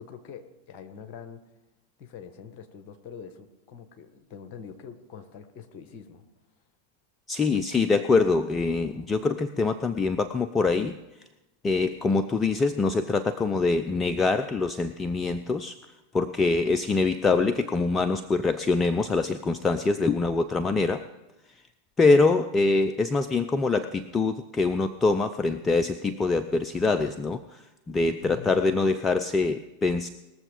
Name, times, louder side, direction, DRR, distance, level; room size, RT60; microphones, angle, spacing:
voice 1, 0.0-1.4 2.0-6.2 28.2-28.5, left 7 dB, 45° left, 7 dB, 1.5 m, -44 dB
voice 2, 7.3-11.0 11.6-15.8 16.1-21.0 22.0-30.1, left 3 dB, 20° left, 10 dB, 0.5 m, -24 dB
20.5 x 7.3 x 5.1 m, 1.0 s
figure-of-eight pair, 90°, 0 cm